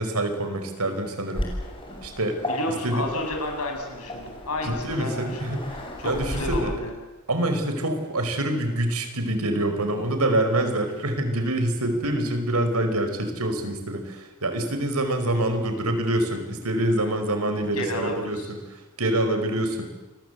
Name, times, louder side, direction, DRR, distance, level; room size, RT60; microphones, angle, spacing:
voice 1, 0.0-1.5 2.0-2.4 2.8-3.1 4.6-5.6 6.0-6.7 7.3-18.6 19.0-19.9, right 1 dB, 85° right, 7 dB, 4.9 m, -26 dB
Waves surf, 1.3-6.6, equal, 25° left, 6.7 m, -34 dB
voice 2, 2.5-6.9 17.7-18.5, left 1 dB, 85° left, 3 dB, 7.6 m, -31 dB
28.0 x 22.5 x 8.2 m, 1.1 s
head